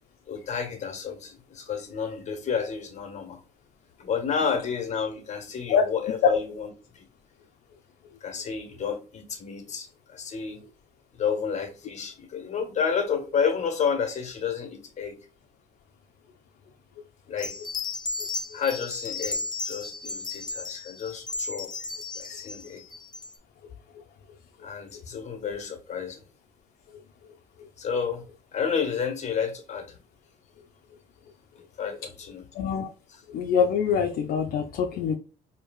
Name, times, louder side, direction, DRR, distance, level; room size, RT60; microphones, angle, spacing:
voice 1, 0.3-3.4 4.0-7.1 8.2-10.6 11.1-15.1 17.3-17.5 18.5-21.7 22.1-22.9 24.6-26.2 27.8-28.2 28.5-30.0 31.8-32.5, left 6 dB, 45° left, 1.4 m, -30 dB
sound 1, 17.4-23.4, left 3 dB, 25° left, 0.9 m, -34 dB
voice 2, 32.5-32.9 33.3-35.1, left 6 dB, 65° left, 0.5 m, -24 dB
4.5 x 2.7 x 2.3 m
cardioid pair, 110°, 17 cm